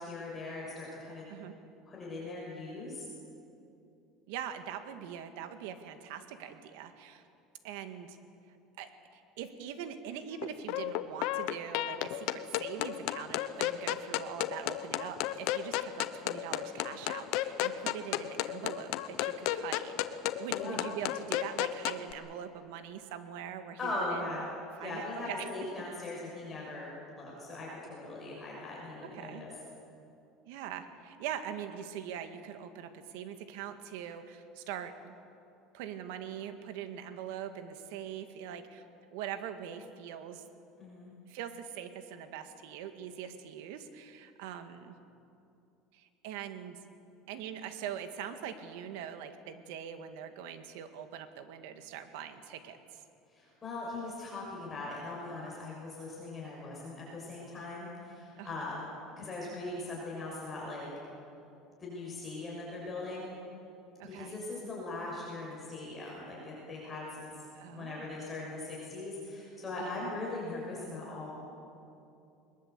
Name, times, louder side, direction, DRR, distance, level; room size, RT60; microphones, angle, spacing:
voice 1, 0.0-1.3 1.9-3.0 20.5-20.8 23.8-24.4 24.8-29.5 40.8-41.1 53.3-58.9 59.2-60.9 61.8-63.3 64.0-67.3 67.7-71.3, left 2 dB, 20° left, -5 dB, 6.7 m, -40 dB
voice 2, 4.3-7.2 7.6-8.2 8.8-20.0 20.4-24.3 24.8-25.5 29.0-29.5 30.5-35.2 35.7-38.8 39.1-40.4 41.3-45.0 45.9-46.8 47.3-53.0 58.4-58.7 64.0-64.4 67.5-68.1 69.8-70.1, right 9 dB, 80° right, 8 dB, 1.9 m, -42 dB
sound 1, 10.4-22.1, left 14 dB, 65° left, 1.0 m, -33 dB
22.0 x 21.0 x 8.3 m, 2.7 s
cardioid pair, 145°, 0 cm